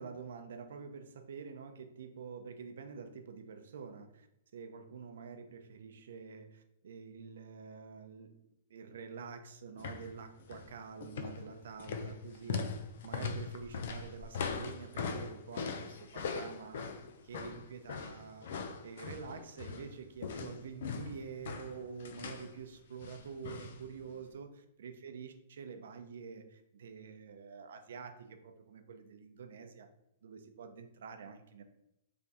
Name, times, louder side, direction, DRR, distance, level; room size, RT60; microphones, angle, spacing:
voice 1, 0.0-4.3 4.5-8.3 8.7-12.8 13.0-16.9 17.2-18.5 18.8-24.5 24.8-29.9 30.2-31.6, right 6 dB, 75° right, 7 dB, 0.6 m, -47 dB
sound 1, 9.8-10.1 10.4-10.7 11.0-19.9 20.2-22.5 23.0-23.8 24.1-24.2, left 5 dB, 65° left, 0.5 m, -40 dB
3.6 x 3.3 x 4.1 m, 0.83 s
hypercardioid pair, 155°, 0 cm